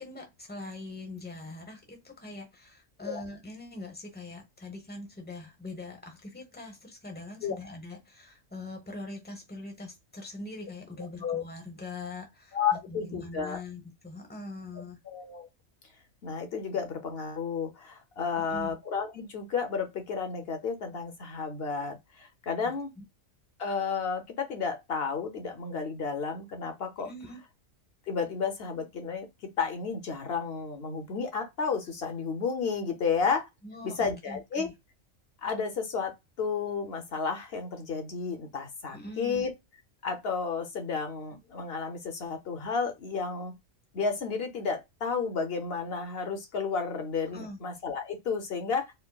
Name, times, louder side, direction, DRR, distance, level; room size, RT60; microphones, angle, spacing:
voice 1, 0.0-12.6 12.9-15.0 18.4-18.8 22.6-23.0 27.0-27.4 33.6-34.7 38.9-39.4 47.3-47.6, left 2 dB, 10° left, 0.8 m, -42 dB
voice 2, 12.5-13.6 15.0-15.5 16.2-22.9 23.6-27.1 28.1-29.3 29.6-33.5 33.8-34.7 35.4-39.5 40.0-43.5 43.9-48.9, left 5 dB, 55° left, 0.9 m, -32 dB
4.4 x 2.0 x 2.3 m
omnidirectional pair, 1.3 m